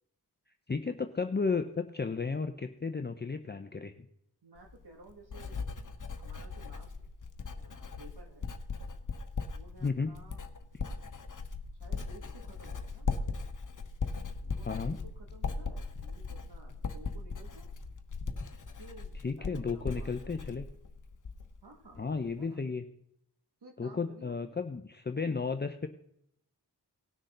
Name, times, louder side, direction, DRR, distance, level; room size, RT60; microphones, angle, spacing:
voice 1, 0.7-3.9 9.8-10.1 14.7-15.0 19.2-20.7 22.0-22.8 23.8-25.9, left 4 dB, 25° left, 7 dB, 0.7 m, -33 dB
voice 2, 4.4-5.6 6.2-6.9 7.6-8.5 9.5-10.4 11.8-13.4 14.5-17.7 18.8-20.5 21.6-22.6 23.6-24.3, right 2 dB, 70° right, 2 dB, 2.2 m, -54 dB
Writing, 4.6-21.6 21.9-22.4, left 4 dB, 50° left, 1.1 m, -39 dB
19.0 x 6.3 x 3.9 m, 0.74 s
wide cardioid pair, 65°, 40 cm